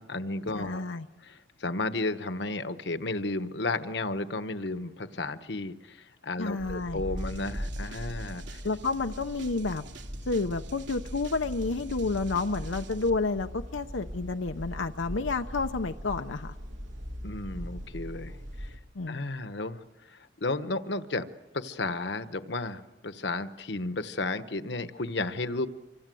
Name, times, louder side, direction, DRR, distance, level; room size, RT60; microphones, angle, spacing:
voice 1, 0.0-0.8 1.2-8.6 17.2-18.7 19.1-21.3 21.5-25.7, left 2 dB, 65° left, 11 dB, 1.2 m, -33 dB
voice 2, 0.5-1.1 6.4-7.0 8.6-9.8 10.3-16.6 18.9-19.2, left 3 dB, 90° left, 6 dB, 0.8 m, -30 dB
sound 1, 6.6-18.8, equal, 90° right, 2.8 m, -40 dB
sound 2, 7.2-13.1, right 4 dB, 75° right, 2.6 m, -50 dB
27.0 x 25.0 x 7.8 m, 1.1 s
head